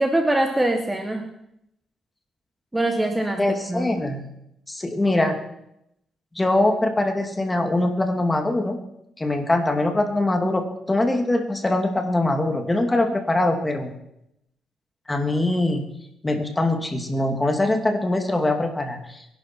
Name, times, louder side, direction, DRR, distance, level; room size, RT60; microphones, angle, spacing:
voice 1, 0.0-1.3 2.7-4.0, right 1 dB, 10° right, 5 dB, 1.4 m, -23 dB
voice 2, 3.4-4.2 4.7-5.4 6.3-8.8 9.2-13.9 15.1-15.9 16.2-19.3, left 2 dB, 15° left, 5 dB, 2.5 m, -22 dB
23.0 x 11.5 x 4.6 m, 0.80 s
cardioid pair, 90°, 0 cm